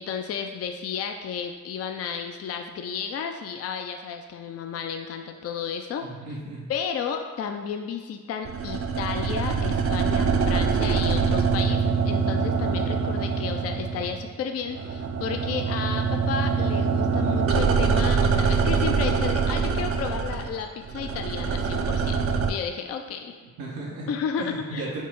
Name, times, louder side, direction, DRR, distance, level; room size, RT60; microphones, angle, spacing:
voice 1, 0.0-6.1 6.7-23.4 24.1-24.9, left 6 dB, 45° left, 5 dB, 0.4 m, -32 dB
voice 2, 6.0-6.7 23.4-24.1 24.4-25.0, right 2 dB, 90° right, -4 dB, 0.8 m, -35 dB
sound 1, 8.4-14.4 14.6-22.5, right 5 dB, 40° right, 0.5 m, -24 dB
4.3 x 2.0 x 4.5 m, 1.5 s
supercardioid pair, 55°, 35 cm